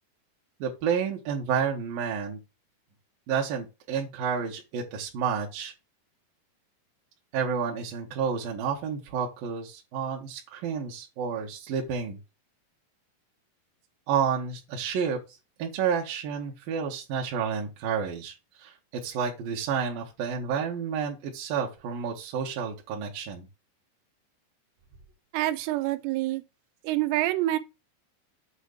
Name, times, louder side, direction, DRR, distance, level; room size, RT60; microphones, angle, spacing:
voice 1, 0.6-2.4 3.3-5.7 7.3-12.2 14.1-15.2 15.6-23.5, right 6 dB, 70° right, 2.3 m, -30 dB
voice 2, 25.3-26.4 26.8-27.6, right 16 dB, 90° right, 3.3 m, -26 dB
8.1 x 3.2 x 6.4 m
omnidirectional pair, 5.6 m